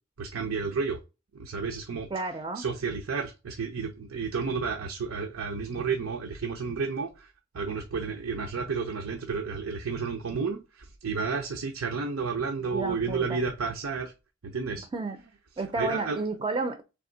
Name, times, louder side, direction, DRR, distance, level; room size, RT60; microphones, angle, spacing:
voice 1, 0.2-1.0 1.3-2.1 2.5-14.1 14.4-14.9 15.6-16.2, right 5 dB, 90° right, 0.6 m, -31 dB
voice 2, 2.1-2.6 12.7-13.4 14.9-15.2 15.6-16.8, right 3 dB, 20° right, 0.4 m, -31 dB
3.7 x 3.5 x 3.8 m
head